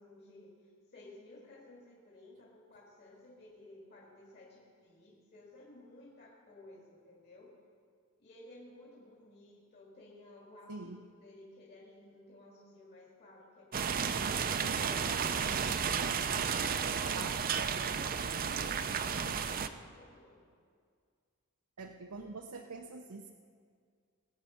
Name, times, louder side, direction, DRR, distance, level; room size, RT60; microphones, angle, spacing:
voice 1, 0.0-7.5 8.2-15.5 16.1-20.4, left 1 dB, 50° left, -4 dB, 2.3 m, -56 dB
voice 2, 10.7-11.0 17.1-17.4 21.8-23.3, right 3 dB, 85° right, 2 dB, 0.8 m, -45 dB
sound 1, 13.7-19.7, right 6 dB, 40° right, 0.5 m, -32 dB
20.5 x 8.4 x 5.7 m, 2.1 s
head